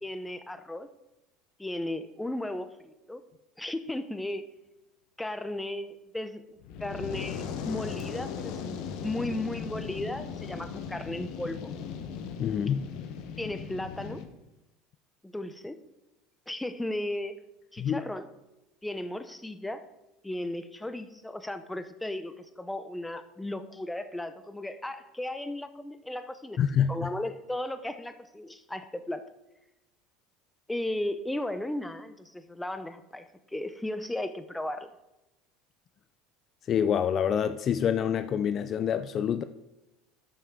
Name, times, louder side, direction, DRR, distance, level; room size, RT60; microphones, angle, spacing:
voice 1, 0.0-0.9 1.6-3.2 3.6-4.4 5.2-11.7 13.4-14.2 15.2-15.8 16.5-17.3 17.7-18.3 18.8-19.8 20.2-26.6 26.9-29.2 30.7-34.9, left 1 dB, 5° left, 0.7 m, -35 dB
Fire, 6.6-14.2, left 7 dB, 65° left, 1.0 m, -38 dB
voice 2, 12.4-12.9 17.8-18.0 26.6-27.1 36.7-39.4, left 8 dB, 40° left, 0.4 m, -26 dB
12.5 x 5.8 x 3.7 m
supercardioid pair, 110°, 0 cm